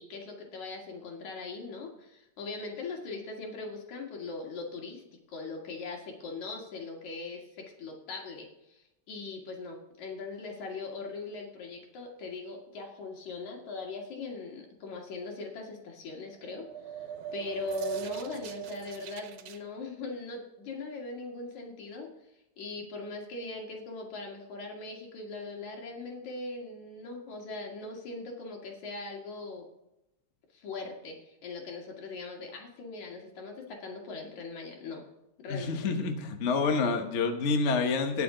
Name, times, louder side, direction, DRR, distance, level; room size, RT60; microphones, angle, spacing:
voice 1, 0.0-5.0 5.3-16.7 16.9-17.1 17.3-22.1 22.6-29.7 30.5-35.0 35.4-35.8, left 3 dB, 75° left, 0 dB, 3.7 m, -40 dB
sound 1, 16.3-19.6, right 9 dB, 85° right, 2.4 m, -39 dB
voice 2, 35.5-38.2, left 4 dB, 60° left, 5 dB, 0.7 m, -28 dB
19.5 x 6.8 x 3.9 m, 0.87 s
omnidirectional pair, 3.3 m